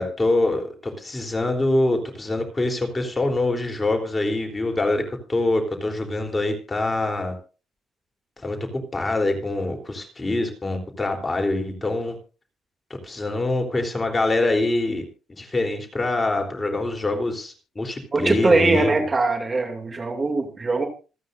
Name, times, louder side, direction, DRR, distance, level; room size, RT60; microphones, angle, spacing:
voice 1, 0.0-7.3 8.4-8.6 8.9-12.2 13.0-15.0 15.4-19.1, left 2 dB, 20° left, 3 dB, 3.6 m, -24 dB
voice 2, 18.1-20.9, right 3 dB, 30° right, 5 dB, 2.6 m, -21 dB
27.0 x 9.2 x 2.6 m, 0.34 s
cardioid pair, 90°, 0 cm